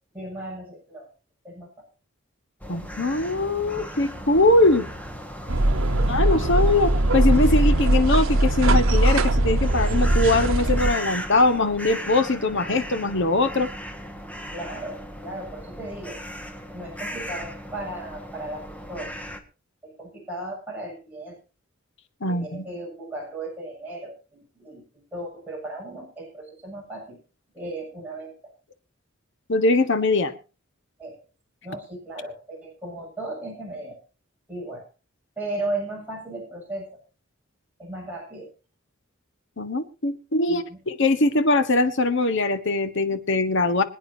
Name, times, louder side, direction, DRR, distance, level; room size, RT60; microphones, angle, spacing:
voice 1, 0.1-1.1 1.4-1.9 14.5-16.2 16.7-19.1 19.8-21.4 22.3-27.2 27.5-28.5 31.0-31.2 31.6-34.0 34.5-34.9 35.4-36.9 37.8-38.5 40.5-40.8, right 2 dB, 10° right, -3 dB, 7.2 m, -36 dB
sound 1, 2.6-19.4, equal, 5° left, 1.7 m, -37 dB
voice 2, 2.7-4.9 6.1-13.7 22.2-22.6 29.5-30.3 39.6-43.8, left 2 dB, 65° left, 10 dB, 1.4 m, -22 dB
sound 2, 5.5-10.9, right 1 dB, 85° right, 1.1 m, -20 dB
25.5 x 9.2 x 2.8 m, 0.34 s
head